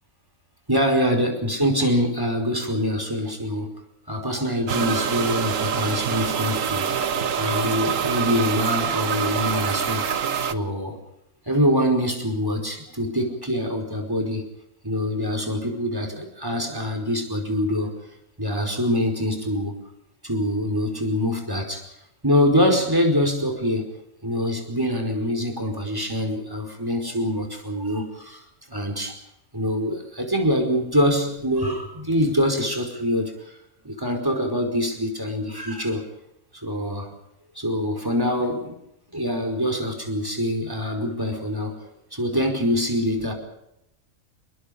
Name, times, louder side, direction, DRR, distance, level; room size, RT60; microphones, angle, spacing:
voice 1, 0.7-3.7 4.1-6.9 7.4-10.1 10.4-11.0 11.5-14.4 14.8-17.9 18.4-19.8 20.2-21.8 22.2-23.9 24.2-28.4 28.7-29.1 29.5-33.6 33.8-36.0 36.6-37.1 37.5-38.6 39.1-41.8 42.1-43.3, equal, 15° right, 2 dB, 4.9 m, -24 dB
sound 1, 4.7-10.5, right 7 dB, 65° right, 1.5 m, -25 dB
28.5 x 22.0 x 5.3 m, 0.82 s
omnidirectional pair, 1.5 m